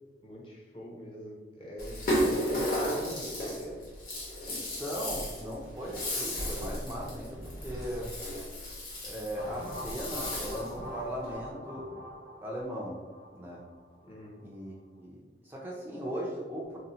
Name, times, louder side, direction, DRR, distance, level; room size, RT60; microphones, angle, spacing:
voice 1, 0.2-3.8 14.1-14.3, equal, 30° left, -3 dB, 0.7 m, -44 dB
Rattle (instrument), 1.8-10.8, equal, 50° left, 1.0 m, -34 dB
voice 2, 4.5-8.1 9.0-11.9 12.4-13.0 13.3-13.7 14.4-16.8, equal, 10° right, -4 dB, 0.4 m, -38 dB
sound 1, 9.3-14.1, equal, 75° left, 1.2 m, -43 dB
2.7 x 2.0 x 3.9 m, 1.3 s
head